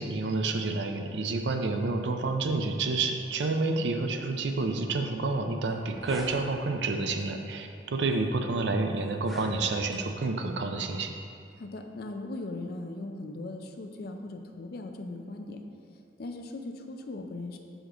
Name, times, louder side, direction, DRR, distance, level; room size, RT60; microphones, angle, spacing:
voice 1, 0.0-11.1, right 3 dB, 75° right, 5 dB, 0.5 m, -29 dB
sound 1, 5.6-6.3 7.2-7.4 8.1-8.2 9.1-10.0, equal, ahead, 0.8 m, -42 dB
voice 2, 11.6-15.6 16.2-17.6, left 2 dB, 55° left, 4 dB, 0.5 m, -39 dB
6.4 x 5.1 x 3.7 m, 2.4 s
head